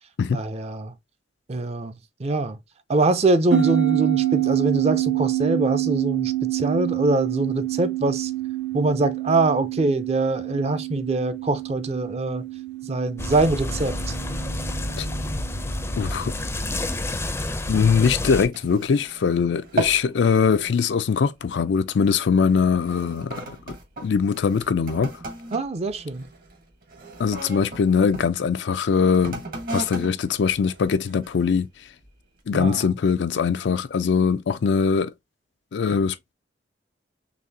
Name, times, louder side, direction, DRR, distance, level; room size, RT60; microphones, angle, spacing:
voice 1, 0.3-1.0 1.5-2.6 2.9-8.3 8.7-12.4 12.8-14.2 25.5-26.3 32.5-32.8, right 2 dB, 35° right, 0.5 m, -24 dB
sound 1, 3.5-16.3, right 14 dB, 85° right, 0.8 m, -27 dB
sound 2, 13.2-18.5, left 1 dB, 15° left, 0.5 m, -29 dB
voice 2, 16.0-16.3 17.7-23.4 23.7-25.1 27.2-29.4 29.7-31.7 32.5-35.1 35.7-36.2, left 6 dB, 85° left, 0.4 m, -22 dB
sound 3, 16.9-19.3 19.6-20.1 20.5-20.8 21.5-21.8 22.5-28.3 29.1-31.4 32.0-32.1, right 2 dB, 55° right, 1.2 m, -36 dB
4.0 x 3.2 x 2.7 m
head